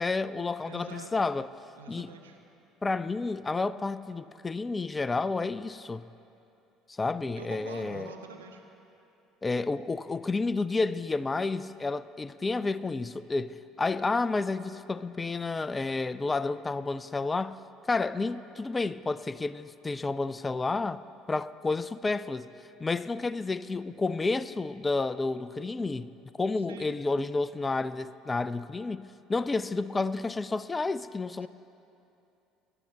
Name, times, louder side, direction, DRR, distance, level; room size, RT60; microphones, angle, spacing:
voice 1, 0.0-1.5 1.9-2.1 2.8-6.0 6.9-8.1 9.4-17.6 17.9-21.0 21.3-22.5 22.8-26.1 26.4-29.0 29.3-31.5, left 3 dB, 20° left, 0.4 m, -30 dB
voice 2, 0.6-1.2 1.8-2.4 7.3-8.6 26.6-27.0 31.4-31.5, right 5 dB, 80° right, 1.2 m, -45 dB
24.5 x 12.0 x 3.0 m
figure-of-eight pair, 60°, 0 cm